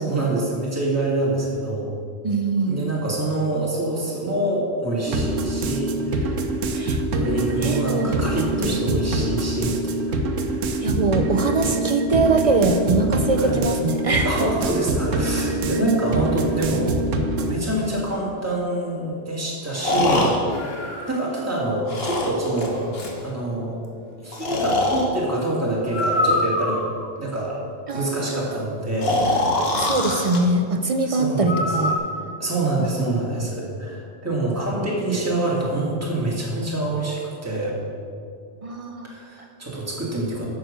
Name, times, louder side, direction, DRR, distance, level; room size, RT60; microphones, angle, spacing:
voice 1, 0.0-1.9 2.7-6.4 7.1-10.2 13.4-13.6 14.2-16.9 17.4-20.3 21.1-22.8 23.2-23.8 24.2-26.8 27.2-27.6 27.9-29.7 31.0-31.7 32.4-37.8 39.0-40.4, right 2 dB, 10° right, -5 dB, 2.0 m, -26 dB
voice 2, 2.2-2.8 6.7-7.0 7.6-8.1 8.6-8.8 10.8-14.5 15.7-15.9 27.9-28.5 29.7-32.0 38.6-39.1, right 3 dB, 50° right, 6 dB, 0.4 m, -22 dB
sound 1, 5.1-17.6, right 2 dB, 80° right, 1.2 m, -25 dB
Breathing, 17.8-17.9 19.7-21.4 21.9-23.2 24.3-25.1 25.9-27.0 29.0-30.4 31.5-32.0, left 2 dB, 55° left, 1.6 m, -23 dB
9.0 x 6.7 x 6.5 m, 2.4 s
omnidirectional pair, 1.3 m